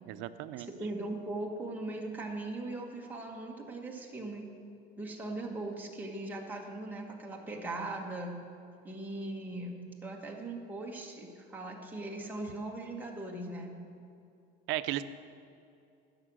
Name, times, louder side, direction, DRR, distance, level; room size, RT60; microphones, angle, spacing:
voice 1, 0.1-0.7 14.7-15.0, right 15 dB, 75° right, 11 dB, 0.6 m, -35 dB
voice 2, 0.6-4.4 5.0-8.3 8.8-13.8, right 2 dB, 10° right, -1 dB, 1.4 m, -39 dB
15.5 x 6.7 x 6.2 m, 2.6 s
cardioid pair, 160°, 20 cm